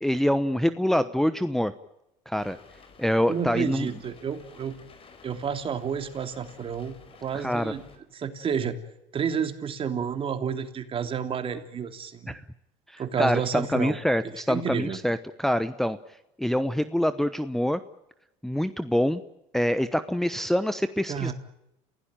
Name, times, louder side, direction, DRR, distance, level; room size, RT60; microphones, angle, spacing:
voice 1, 0.0-1.7 2.3-2.6 3.0-3.9 7.3-7.7 12.3-12.4 12.9-16.0 16.4-17.8 18.4-19.2 19.5-21.3, equal, ahead, 10 dB, 0.9 m, -25 dB
sound 1, 2.4-8.0, left 5 dB, 35° left, 4.6 m, -52 dB
voice 2, 3.3-4.8 5.2-7.8 8.1-8.8 9.1-12.3 13.0-14.0 14.5-15.0 21.1-21.3, right 7 dB, 35° right, 8 dB, 2.9 m, -30 dB
29.0 x 16.5 x 9.0 m, 0.86 s
supercardioid pair, 100°, 15 cm